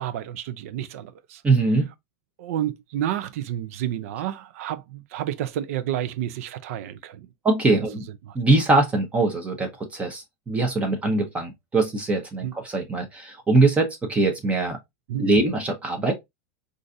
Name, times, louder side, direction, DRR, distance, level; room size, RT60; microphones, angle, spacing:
voice 1, 0.0-1.4 2.4-7.3 7.7-7.8 8.2-8.4 12.4-12.6 15.1-15.4, right 11 dB, 65° right, 0.5 m, -30 dB
voice 2, 1.4-1.9 7.4-8.0 8.3-14.8 15.2-16.1, right 3 dB, 15° right, 0.7 m, -22 dB
3.9 x 2.5 x 2.5 m
supercardioid pair, 140°, 8 cm